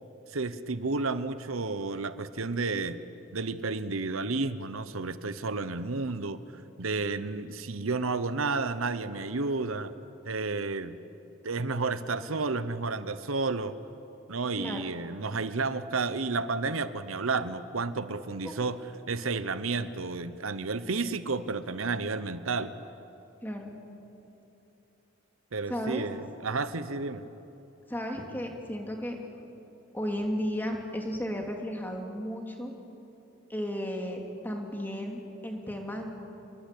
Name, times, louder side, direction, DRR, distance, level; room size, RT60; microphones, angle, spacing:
voice 1, 0.3-3.0 3.3-6.4 6.8-9.9 10.2-11.0 11.4-13.7 14.3-18.8 19.1-22.7 25.5-27.2, right 3 dB, 85° right, 13 dB, 1.0 m, -31 dB
voice 2, 14.6-14.9 18.4-18.5 23.4-23.7 25.7-26.1 27.9-29.2 29.9-32.7 33.5-36.1, equal, 10° left, 2 dB, 2.8 m, -34 dB
28.5 x 22.5 x 8.5 m, 2.9 s
head